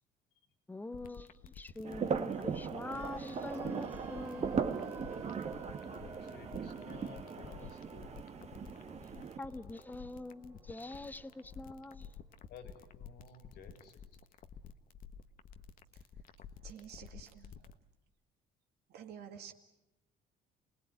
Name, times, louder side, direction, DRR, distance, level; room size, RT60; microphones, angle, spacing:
voice 1, 0.7-4.6 9.4-12.1, left 2 dB, 10° left, 1.0 m, -44 dB
sound 1, 0.9-17.7, left 7 dB, 55° left, 1.3 m, -51 dB
sound 2, 1.8-9.4, right 6 dB, 40° right, 1.5 m, -39 dB
sound 3, 2.9-12.9 13.1-13.2, right 3 dB, 15° right, 3.5 m, -54 dB
voice 2, 5.8-8.3 12.5-13.9, left 5 dB, 75° left, 3.8 m, -54 dB
voice 3, 16.6-17.7 18.9-19.5, right 8 dB, 75° right, 2.3 m, -50 dB
28.5 x 19.0 x 9.1 m
cardioid pair, 110°, 17 cm